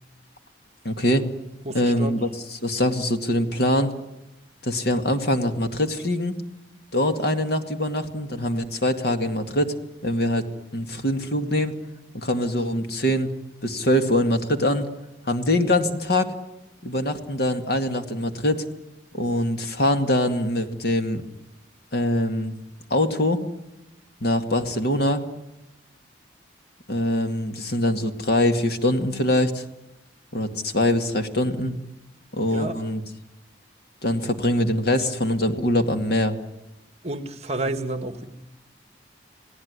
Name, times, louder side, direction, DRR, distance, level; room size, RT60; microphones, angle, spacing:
voice 1, 0.8-1.2 1.7-3.9 4.6-6.4 6.9-9.7 10.0-10.4 10.7-11.7 12.1-13.3 13.6-14.9 15.3-16.3 16.8-18.6 19.1-21.2 21.9-22.6 22.9-23.4 24.2-25.2 26.9-29.6 30.3-31.7 32.3-33.0 34.0-36.4, left 1 dB, 55° left, 7 dB, 2.2 m, -23 dB
voice 2, 1.6-2.1 32.5-32.7 37.0-38.3, right 2 dB, 35° right, 9 dB, 1.6 m, -30 dB
28.5 x 18.0 x 9.7 m, 0.94 s
head